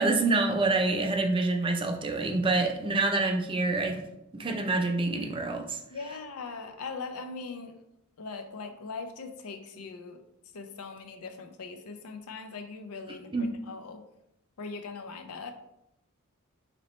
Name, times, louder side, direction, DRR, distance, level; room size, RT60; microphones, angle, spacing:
voice 1, 0.0-4.0 4.3-5.8 13.3-13.5, right 3 dB, 25° right, 3 dB, 0.4 m, -27 dB
voice 2, 5.9-7.8 8.2-10.2 10.5-14.0 14.6-15.5, left 4 dB, 85° left, 7 dB, 0.5 m, -40 dB
4.1 x 2.9 x 3.0 m, 0.83 s
head